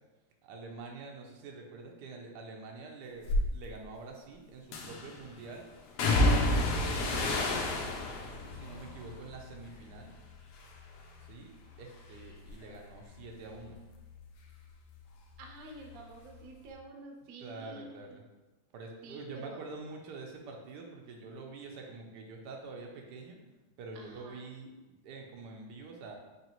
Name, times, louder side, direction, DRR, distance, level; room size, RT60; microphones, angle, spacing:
voice 1, 0.4-5.7 6.2-7.6 8.5-10.1 11.3-13.8 17.4-18.2 18.7-23.4 23.8-24.7 25.0-26.2, right 3 dB, 85° right, 2 dB, 1.2 m, -46 dB
sound 1, 3.2-3.5 4.7-5.2 6.0-10.2 10.5-11.2 11.5-14.8 15.1-16.2 16.5-16.6, left 1 dB, 80° left, 1.1 m, -32 dB
voice 2, 15.4-18.2 19.0-19.6 23.9-24.4, right 2 dB, 70° right, 1 dB, 0.9 m, -49 dB
4.0 x 3.1 x 2.9 m, 1.1 s
omnidirectional pair, 1.8 m